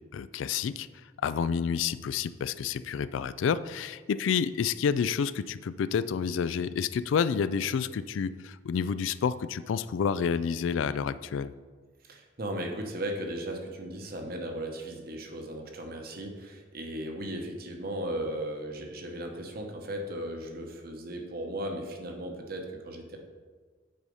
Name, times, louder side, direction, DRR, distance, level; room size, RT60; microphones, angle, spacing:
voice 1, 0.1-0.9 1.2-11.5, left 6 dB, 85° left, 15 dB, 0.3 m, -29 dB
voice 2, 12.1-23.2, right 1 dB, 50° right, 3 dB, 1.1 m, -36 dB
7.9 x 4.9 x 5.4 m, 1.5 s
head